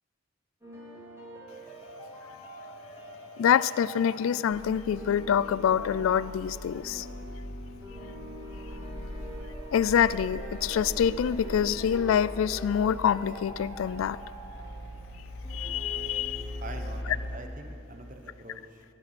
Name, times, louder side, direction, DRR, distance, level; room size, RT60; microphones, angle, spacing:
sound 1, 0.6-17.6, equal, 15° right, 3.2 m, -45 dB
voice 1, 3.4-7.1 9.7-14.2 15.5-16.6, left 8 dB, 85° left, 18 dB, 0.3 m, -26 dB
sound 2, 4.5-17.4, equal, 55° left, 2.0 m, -41 dB
voice 2, 16.6-18.8, right 2 dB, 40° right, 5 dB, 1.0 m, -44 dB
20.0 x 11.5 x 6.1 m, 2.4 s
head